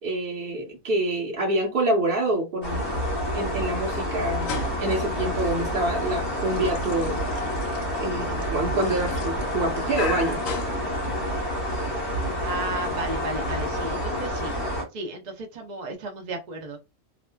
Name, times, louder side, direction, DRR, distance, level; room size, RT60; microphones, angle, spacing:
voice 1, 0.0-3.1 3.3-7.2 8.0-10.4, right 1 dB, 45° right, 1.0 m, -27 dB
sound 1, 2.6-14.8, equal, 40° left, 1.3 m, -28 dB
sound 2, 4.3-11.5, left 5 dB, 65° left, 1.0 m, -37 dB
voice 2, 12.4-14.5 14.9-16.8, right 2 dB, 70° right, 0.4 m, -34 dB
2.8 x 2.5 x 2.2 m
omnidirectional pair, 1.6 m